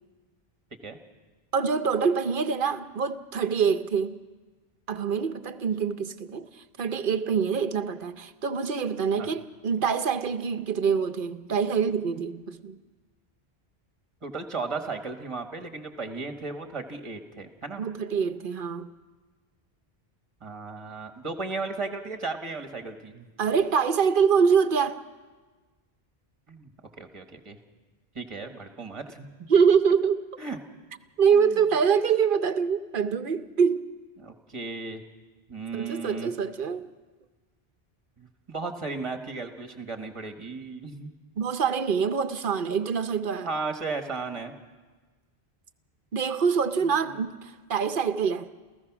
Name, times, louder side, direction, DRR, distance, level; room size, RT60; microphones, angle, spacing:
voice 1, 1.5-4.2 4.9-6.5 6.8-12.8 17.8-18.9 23.4-25.0 29.5-30.2 31.2-33.9 35.7-36.9 41.4-43.5 46.1-48.5, right 6 dB, 60° right, 0.9 m, -25 dB
voice 2, 14.2-17.8 20.4-23.3 26.5-26.7 27.0-27.6 28.1-29.3 30.4-30.6 31.3-31.6 34.2-35.0 35.5-36.3 38.2-41.1 43.4-44.5 46.8-47.2, right 3 dB, 30° right, 1.6 m, -35 dB
29.5 x 15.0 x 6.0 m
omnidirectional pair, 1.0 m